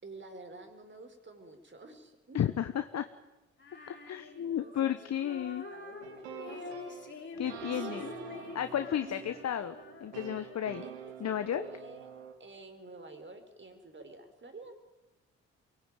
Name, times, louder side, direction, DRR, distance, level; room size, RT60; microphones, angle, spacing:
voice 1, 0.0-2.4 4.4-6.7 7.7-8.5 9.0-9.5 10.8-10.9 11.5-12.1 12.4-14.7, right 2 dB, 35° right, 7 dB, 4.8 m, -49 dB
voice 2, 2.3-3.1 3.9-5.6 7.4-8.0 8.5-9.7 10.0-10.8 11.2-11.6, left 10 dB, 55° left, 9 dB, 1.2 m, -33 dB
Female singing, 3.6-11.0, left 3 dB, 35° left, 5.8 m, -47 dB
sound 1, 6.0-12.3, right 8 dB, 85° right, 2.3 m, -46 dB
23.5 x 18.5 x 9.2 m, 1.1 s
hypercardioid pair, 45°, 33 cm